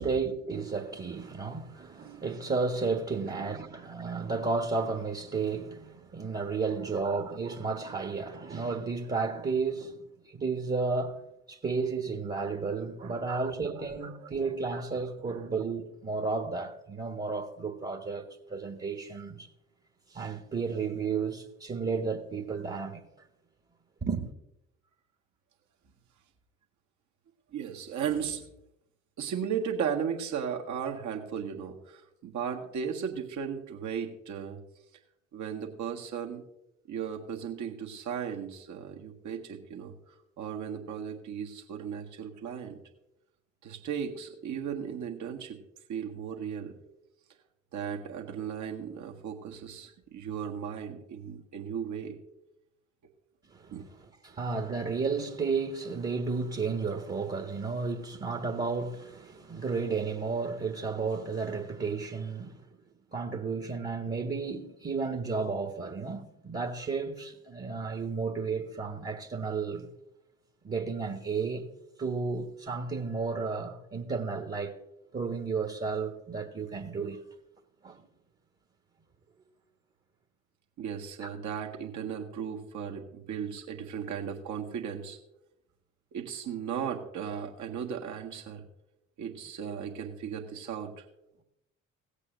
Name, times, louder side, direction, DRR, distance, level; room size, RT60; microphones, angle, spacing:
voice 1, 0.0-10.0 10.2-11.2 11.5-19.5 20.1-23.0 24.0-24.3 53.5-53.7 54.2-62.6 63.1-69.9 70.6-71.7 72.0-74.8 75.1-77.2 77.8-78.0 81.2-81.3, right 4 dB, 25° right, 1.5 m, -32 dB
voice 2, 13.0-13.4 14.0-14.3 15.3-15.4 27.5-28.4 29.2-34.6 35.3-36.4 36.9-39.9 40.4-42.8 43.6-45.6 45.9-46.7 47.7-52.2 53.7-53.9 80.8-85.2 86.1-88.6 89.2-91.0, right 7 dB, 50° right, 1.7 m, -36 dB
18.0 x 8.4 x 2.6 m
figure-of-eight pair, 45°, 39 cm